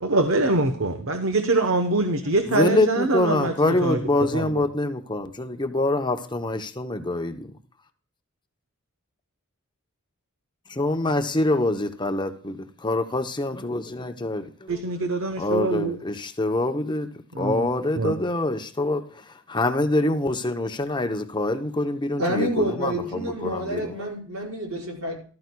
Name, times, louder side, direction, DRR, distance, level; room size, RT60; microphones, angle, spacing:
voice 1, 0.0-4.0 4.3-4.6 14.7-16.0 17.3-17.7 18.0-18.2, right 2 dB, 65° right, 7 dB, 0.9 m, -24 dB
voice 2, 2.5-7.5 10.7-14.8 15.4-17.1 17.4-19.2 19.5-23.9, left 2 dB, 20° left, 7 dB, 0.7 m, -25 dB
voice 3, 22.2-25.2, right 1 dB, 80° right, -1 dB, 5.0 m, -28 dB
13.5 x 13.0 x 2.3 m, 0.42 s
head